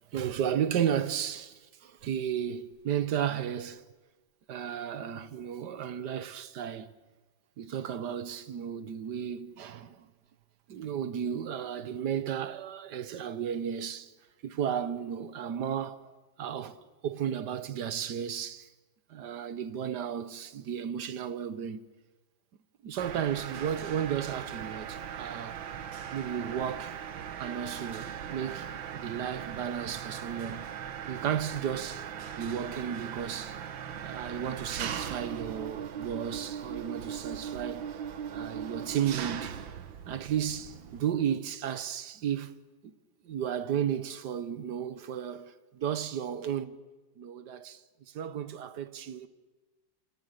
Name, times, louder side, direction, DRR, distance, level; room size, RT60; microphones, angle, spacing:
voice 1, 0.1-3.8 4.5-6.9 7.6-10.1 10.7-14.1 14.4-16.7 17.0-18.7 19.1-21.8 22.8-25.6 26.1-27.0 27.4-28.7 28.9-30.7 31.1-32.1 32.3-33.6 34.0-37.9 38.3-39.6 40.1-42.5 42.8-42.9 43.2-46.8 47.2-47.8 48.1-49.3, right 9 dB, 65° right, 1.6 m, -34 dB
Mechanisms, 23.0-41.0, right 8 dB, 85° right, 1.9 m, -39 dB
28.5 x 27.5 x 6.6 m
omnidirectional pair, 2.1 m